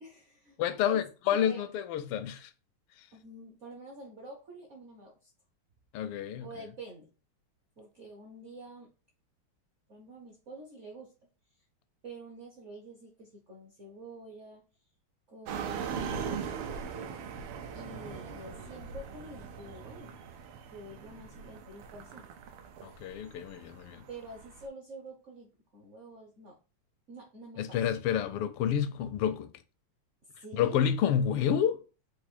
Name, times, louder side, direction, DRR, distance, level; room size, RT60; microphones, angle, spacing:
voice 1, 0.0-0.6 0.8-1.0 1.4-1.7 3.1-5.3 6.4-7.1 7.8-8.9 9.9-11.1 12.0-14.6 15.3-16.6 17.7-20.2 20.7-22.2 24.1-26.6 27.1-27.8 30.3-30.9, right 1 dB, 60° right, 0.7 m, -47 dB
voice 2, 0.6-2.5 5.9-6.5 22.8-24.0 27.6-29.5 30.5-31.8, left 9 dB, 85° left, 1.5 m, -29 dB
sound 1, 15.5-24.7, right 6 dB, 85° right, 1.6 m, -40 dB
4.6 x 2.6 x 4.2 m
omnidirectional pair, 2.4 m